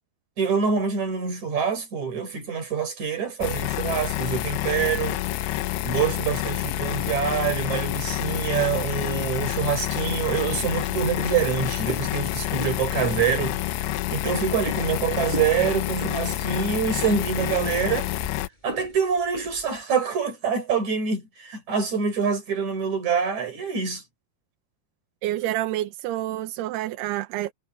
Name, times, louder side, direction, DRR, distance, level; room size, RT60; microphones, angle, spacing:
voice 1, 0.4-5.2 5.8-13.6 14.1-18.1 18.6-24.0, right 6 dB, 45° right, 5.5 m, -25 dB
sound 1, 3.4-18.5, left 14 dB, 75° left, 2.4 m, -28 dB
sound 2, 11.7-19.8, left 1 dB, 10° left, 5.4 m, -41 dB
voice 2, 25.2-27.5, right 14 dB, 80° right, 2.9 m, -28 dB
omnidirectional pair, 4.8 m